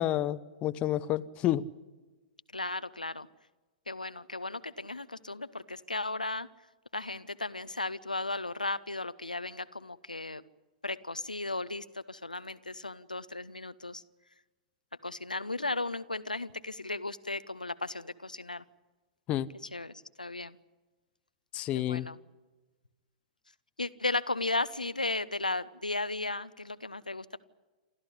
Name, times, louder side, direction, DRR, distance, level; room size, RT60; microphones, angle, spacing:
voice 1, 0.0-1.7 19.3-19.5 21.5-22.1, left 13 dB, 30° left, 0.8 m, -30 dB
voice 2, 2.5-3.3 3.9-6.5 6.9-10.4 10.8-14.0 15.0-18.6 19.7-20.6 21.7-22.2 23.8-27.4, left 2 dB, 85° left, 0.8 m, -35 dB
28.0 x 13.5 x 9.8 m
figure-of-eight pair, 105°, 4 cm